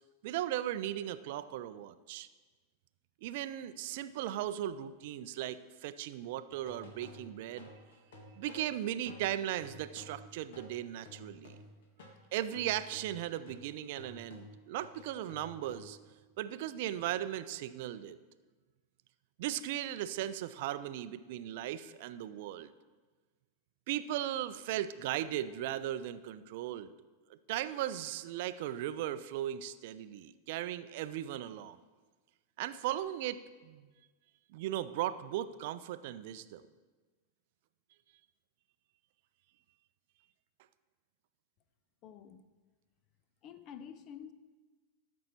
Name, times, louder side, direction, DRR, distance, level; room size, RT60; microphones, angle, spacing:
voice 1, 0.2-2.3 3.2-7.7 8.4-11.5 12.0-16.0 16.4-18.2 19.4-22.7 23.9-26.9 27.3-31.8 32.6-33.9 34.5-36.6, right 12 dB, 50° right, 13 dB, 0.4 m, -37 dB
sound 1, 6.5-12.2 12.5-16.1, left 1 dB, 55° left, 1.7 m, -53 dB
voice 2, 42.0-42.4 43.4-44.3, left 8 dB, 35° left, 12 dB, 0.6 m, -48 dB
13.0 x 6.2 x 4.3 m, 1.3 s
figure-of-eight pair, 90°, 0 cm